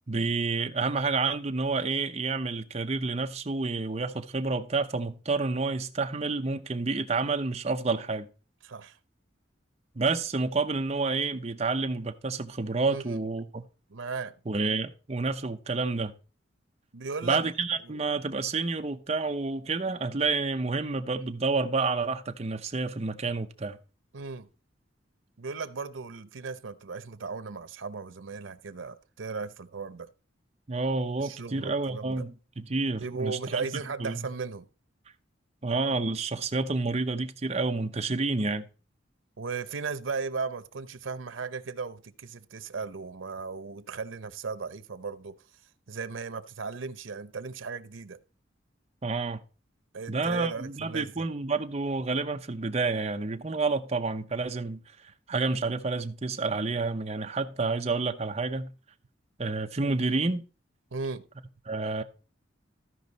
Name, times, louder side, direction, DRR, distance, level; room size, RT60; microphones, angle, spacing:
voice 1, 0.1-8.3 9.9-13.6 14.5-16.1 17.2-23.8 30.7-33.7 34.0-34.3 35.6-38.7 49.0-49.4 50.1-54.8 55.3-58.7 59.4-60.4 61.7-62.0, right 3 dB, 35° right, 0.7 m, -29 dB
voice 2, 8.6-9.0 12.9-13.2 13.9-14.3 16.9-17.5 17.8-18.0 24.1-24.5 25.4-30.1 31.2-32.2 33.0-34.7 39.4-45.4 45.9-48.2 49.9-51.3 60.9-61.3, right 4 dB, 90° right, 0.7 m, -36 dB
14.0 x 5.2 x 4.0 m
head